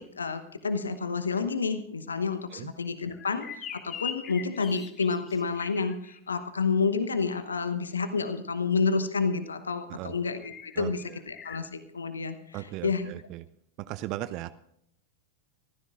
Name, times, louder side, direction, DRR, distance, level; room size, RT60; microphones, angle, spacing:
voice 1, 0.0-11.0 11.3-12.6 12.8-13.1, left 5 dB, 75° left, 11 dB, 0.9 m, -29 dB
sound 1, 3.1-6.2 10.4-11.6, left 8 dB, 30° left, 1.3 m, -42 dB
voice 2, 10.8-11.2 12.5-13.4 13.8-14.5, right 15 dB, 40° right, 15 dB, 0.5 m, -37 dB
24.5 x 14.5 x 2.5 m, 0.74 s
figure-of-eight pair, 90°, 0 cm